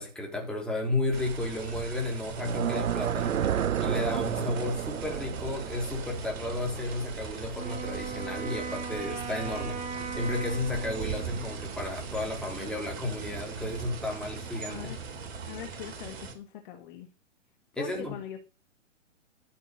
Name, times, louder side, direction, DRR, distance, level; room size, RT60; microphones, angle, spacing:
voice 1, 0.0-3.4 3.8-9.8 10.1-14.9 17.8-18.2, left 2 dB, ahead, 3.6 m, -33 dB
sound 1, 1.1-16.3, right 6 dB, 50° right, 3.1 m, -39 dB
sound 2, 2.3-7.4, right 9 dB, 80° right, 0.5 m, -31 dB
Wind instrument woodwind instrument, 7.5-11.7, right 5 dB, 15° right, 1.9 m, -38 dB
voice 2, 15.5-17.1 17.8-18.4, left 11 dB, 40° left, 1.7 m, -41 dB
13.0 x 7.1 x 6.5 m
figure-of-eight pair, 115°, 39 cm